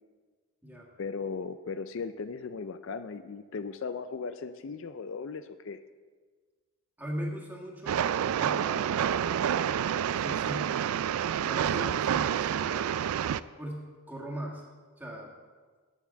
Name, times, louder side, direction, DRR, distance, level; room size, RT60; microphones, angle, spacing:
voice 1, 1.0-5.8, left 5 dB, 60° left, 11 dB, 0.4 m, -37 dB
voice 2, 7.0-9.4 10.1-10.8 11.4-13.0 13.6-14.6 15.0-15.4, equal, 10° right, -2 dB, 1.6 m, -39 dB
Train, 7.9-13.4, right 9 dB, 80° right, 0.3 m, -28 dB
9.4 x 7.1 x 6.9 m, 1.5 s
head